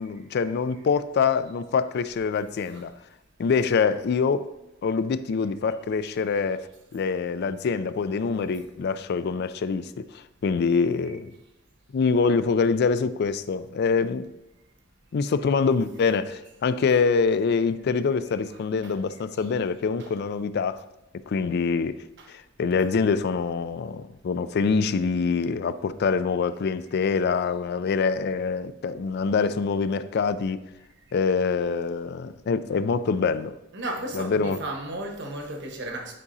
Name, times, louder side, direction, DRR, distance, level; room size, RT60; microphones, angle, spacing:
voice 1, 0.0-2.9 3.4-4.5 4.8-9.9 10.4-11.3 11.9-14.3 15.1-20.8 21.3-22.0 22.3-30.6 31.1-33.5 34.1-34.6, left 5 dB, 55° left, 0.3 m, -25 dB
voice 2, 18.3-19.0 19.4-19.5 20.0-20.1 22.2-22.3 31.1-31.2 33.7-36.2, right 1 dB, 60° right, 1.2 m, -35 dB
9.9 x 4.8 x 2.7 m
head